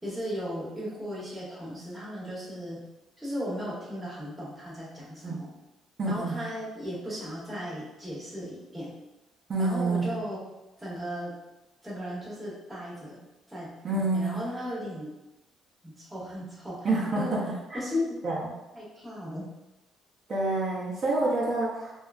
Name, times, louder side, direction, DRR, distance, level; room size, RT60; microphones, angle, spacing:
voice 1, 0.0-2.8 3.2-5.5 6.1-8.9 9.6-10.4 10.8-11.3 11.8-13.2 13.5-13.7 14.0-15.1 15.8-16.9 17.1-17.3 17.7-18.1 18.7-19.4, equal, 5° right, -7 dB, 0.9 m, -36 dB
voice 2, 6.0-6.5 9.5-10.3 13.8-14.4 16.8-17.4 17.7-17.8 18.2-18.4 20.3-21.9, right 2 dB, 35° right, -7 dB, 0.5 m, -27 dB
2.6 x 2.3 x 2.3 m, 1.0 s
cardioid pair, 135°, 0 cm